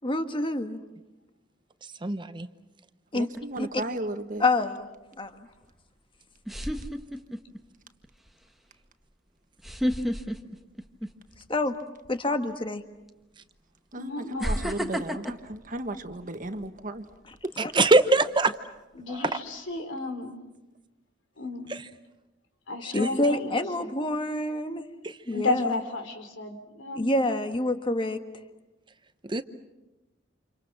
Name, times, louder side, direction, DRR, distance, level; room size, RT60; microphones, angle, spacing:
voice 1, 0.0-0.8 3.1-3.3 4.4-4.9 5.2-5.3 11.5-11.7 12.1-12.8 17.6-17.9 22.8-24.8 25.3-25.7 26.9-28.2, left 2 dB, 25° left, 7 dB, 1.6 m, -27 dB
voice 2, 2.0-2.5 17.6-18.5 19.1-19.3 21.7-21.8 25.0-25.2 29.2-29.4, right 2 dB, 25° right, 11 dB, 0.8 m, -22 dB
voice 3, 3.1-4.4 13.9-17.1, right 1 dB, 45° right, 7 dB, 1.6 m, -35 dB
Laugh - female, 3.3-3.8 5.7-5.8 6.5-7.6 8.0-8.3 9.6-11.5 11.8-12.1 13.1-13.2 14.4-16.7 17.1-17.4, equal, ahead, 1.3 m, -31 dB
voice 4, 14.0-14.6 18.9-20.4 21.4-21.7 22.7-23.9 25.3-27.1, left 3 dB, 80° left, 7 dB, 3.5 m, -33 dB
30.0 x 28.0 x 6.1 m, 1.0 s
head